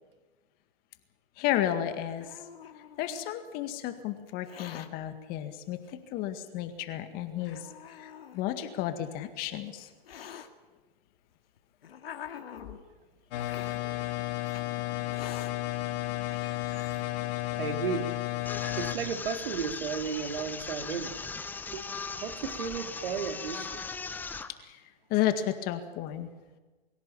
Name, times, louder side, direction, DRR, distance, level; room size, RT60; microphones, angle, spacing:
voice 1, 1.4-2.3 3.0-5.8 6.1-7.6 8.0-9.9 24.6-24.8 25.1-26.3, left 12 dB, 30° left, 8 dB, 1.9 m, -32 dB
Hiss, 1.7-3.3 4.3-4.9 5.8-5.9 6.8-6.9 7.4-8.4 9.3-10.5 11.3-12.8 13.4-13.8 14.5-14.6 15.1-15.5 16.0-16.1 16.3-17.0, left 9 dB, 70° left, 2.2 m, -46 dB
sound 1, 13.3-18.9, left 17 dB, 45° left, 2.6 m, -33 dB
voice 2, 13.8-14.1 17.6-18.1 18.8-21.1 21.7-21.9 22.2-23.8, right 6 dB, 65° right, 6 dB, 2.7 m, -34 dB
sound 2, 18.4-24.5, left 4 dB, 5° left, 0.8 m, -38 dB
24.5 x 16.0 x 8.7 m, 1.2 s
hypercardioid pair, 140°, 30 cm